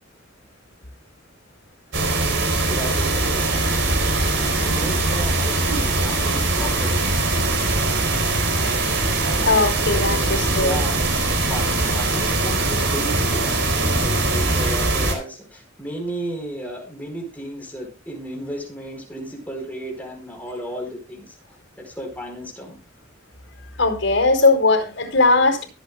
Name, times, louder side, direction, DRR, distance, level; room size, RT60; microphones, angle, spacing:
sound 1, 1.9-15.1, right 2 dB, 70° right, 4.3 m, -21 dB
voice 1, 2.7-3.7 4.2-7.1 9.4-10.1 10.4-21.4 21.8-22.8, equal, 10° left, 4.6 m, -34 dB
voice 2, 9.4-10.8 11.6-11.9 23.8-25.7, left 3 dB, 85° left, 4.5 m, -19 dB
23.0 x 8.2 x 2.3 m
head